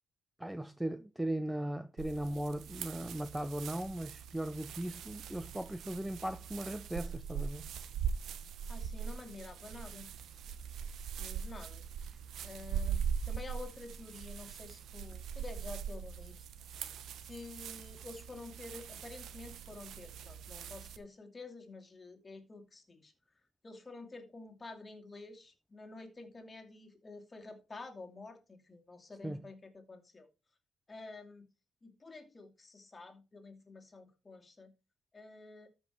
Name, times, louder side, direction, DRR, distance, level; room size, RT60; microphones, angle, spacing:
voice 1, 0.4-7.7 29.2-29.4, right 1 dB, 10° right, 0.6 m, -38 dB
sound 1, 2.0-21.0, right 7 dB, 75° right, 0.9 m, -41 dB
voice 2, 8.7-10.1 11.2-11.8 12.4-16.4 17.2-23.1 23.6-30.3 30.9-31.4 31.8-34.7 35.1-35.7, left 3 dB, 25° left, 2.5 m, -49 dB
13.0 x 5.5 x 4.5 m
cardioid pair, 90°, 0 cm